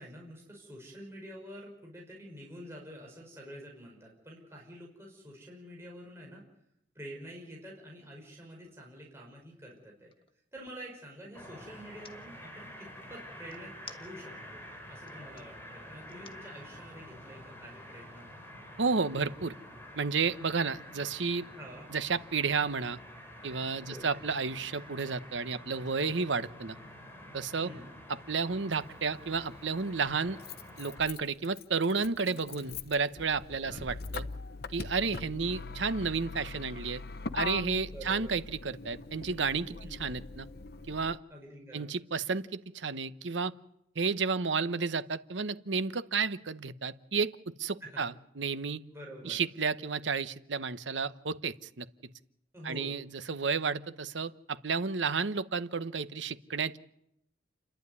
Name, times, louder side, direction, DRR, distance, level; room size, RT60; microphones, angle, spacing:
voice 1, 0.0-6.4 7.0-10.1 10.5-14.6 14.9-18.3 21.6-21.9 23.9-24.1 27.6-27.9 33.6-33.8 37.9-38.3 39.8-40.0 41.3-41.9 47.8-48.0 48.9-49.4 52.5-52.9, equal, 15° right, -2 dB, 5.4 m, -47 dB
sound 1, 9.4-10.9 11.8-12.2 13.5-14.5 14.9-15.5 16.1-16.5, left 6 dB, 30° left, 1.4 m, -52 dB
sound 2, 11.3-31.0, equal, 15° left, 4.6 m, -49 dB
voice 2, 18.8-19.5 20.0-21.5 21.9-23.0 23.4-26.8 27.3-27.7 28.1-30.4 30.8-34.2 34.7-37.0 37.3-40.5 40.9-41.2 41.7-43.5 43.9-48.8 49.2-51.9 52.6-56.8, right 5 dB, 85° right, 13 dB, 1.0 m, -32 dB
Motor vehicle (road), 28.8-28.9 30.0-41.2, left 4 dB, 55° left, 0.8 m, -41 dB
29.5 x 11.5 x 9.7 m, 0.79 s
head